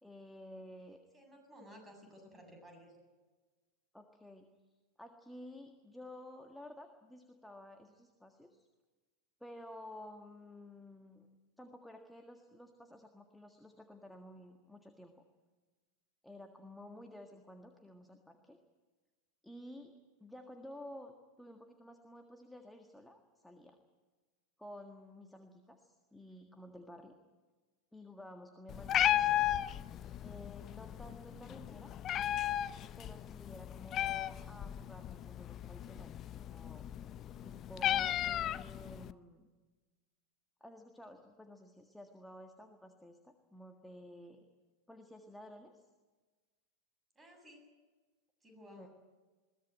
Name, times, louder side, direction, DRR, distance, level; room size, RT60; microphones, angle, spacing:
voice 1, 0.0-1.0 3.9-8.7 9.4-11.3 11.6-15.2 16.2-18.6 19.4-19.9 20.2-23.8 24.6-27.2 27.9-29.5 30.2-31.9 33.0-36.8 37.4-39.5 40.6-44.5 44.9-45.9 48.7-48.9, left 1 dB, 5° left, 4 dB, 1.8 m, -52 dB
voice 2, 1.1-2.9 28.8-29.1 39.1-39.2 47.1-47.7 48.4-48.9, equal, 15° right, 4 dB, 7.7 m, -56 dB
Meow, 28.7-39.1, left 12 dB, 30° left, 0.6 m, -35 dB
22.0 x 18.0 x 9.2 m, 1.3 s
figure-of-eight pair, 90°, 0 cm